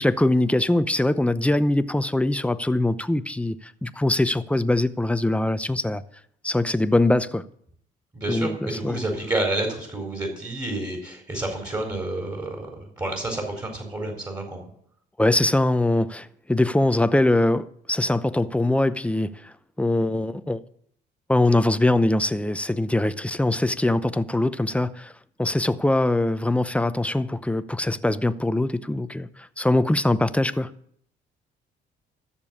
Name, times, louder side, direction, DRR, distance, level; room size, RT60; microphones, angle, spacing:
voice 1, 0.0-3.6 3.8-6.0 6.4-7.4 8.3-9.0 15.2-20.6 21.3-25.1 25.4-29.3 29.6-30.7, left 1 dB, 5° left, 0.7 m, -22 dB
voice 2, 8.1-14.7, right 2 dB, 20° right, 4.0 m, -29 dB
13.5 x 7.0 x 8.7 m
cardioid pair, 90°, 20 cm